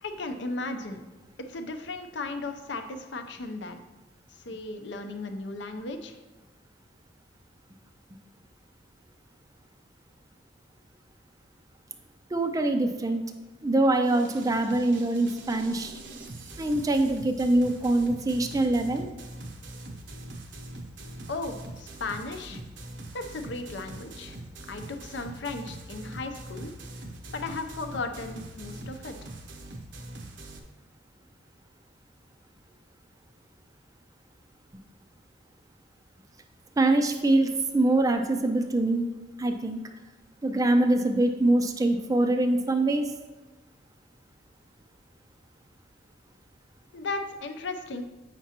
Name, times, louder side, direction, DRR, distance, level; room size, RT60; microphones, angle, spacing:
voice 1, 0.0-1.0 1.4-3.8 4.3-6.2 21.3-22.6 23.1-24.4 24.7-26.7 27.3-29.3 46.9-48.0, left 3 dB, 65° left, 6 dB, 0.6 m, -36 dB
voice 2, 12.3-13.2 13.6-16.0 16.6-19.1 36.8-39.1 39.4-39.8 40.4-43.1, right 2 dB, 20° right, 5 dB, 0.4 m, -24 dB
sound 1, 14.0-30.6, right 1 dB, 65° right, 0.7 m, -43 dB
8.1 x 5.9 x 2.9 m, 1.1 s
head